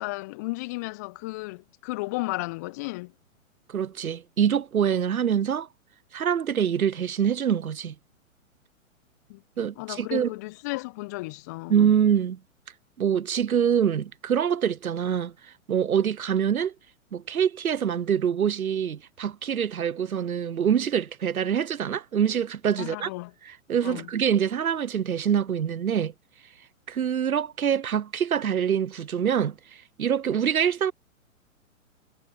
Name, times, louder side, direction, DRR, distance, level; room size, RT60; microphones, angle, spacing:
voice 1, 0.0-3.1 9.3-9.4 9.8-11.7 22.8-23.3 23.8-24.1, left 23 dB, 15° left, 0.5 m, -34 dB
voice 2, 3.7-5.7 6.1-7.9 9.6-10.3 11.7-12.4 13.0-15.3 15.7-16.7 17.1-23.1 23.5-26.1 26.9-30.9, right 8 dB, 90° right, 0.5 m, -25 dB
figure-of-eight pair, 115°, 41 cm